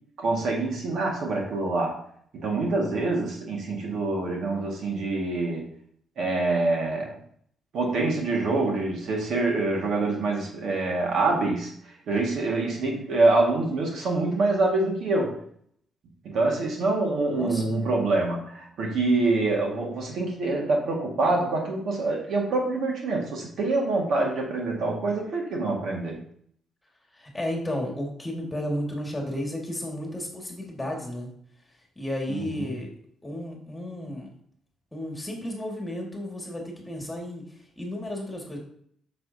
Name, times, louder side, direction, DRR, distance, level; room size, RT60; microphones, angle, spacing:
voice 1, 0.2-2.0 2.3-5.7 6.2-7.1 7.7-11.7 12.1-15.4 16.2-26.2 32.3-32.7, right 2 dB, 70° right, 0 dB, 1.8 m, -25 dB
voice 2, 17.4-17.8 27.1-31.3 32.0-32.9 33.2-34.3 34.9-38.6, left 1 dB, 15° left, 0 dB, 1.9 m, -33 dB
7.9 x 6.1 x 2.8 m, 0.64 s
cardioid pair, 90°, 0 cm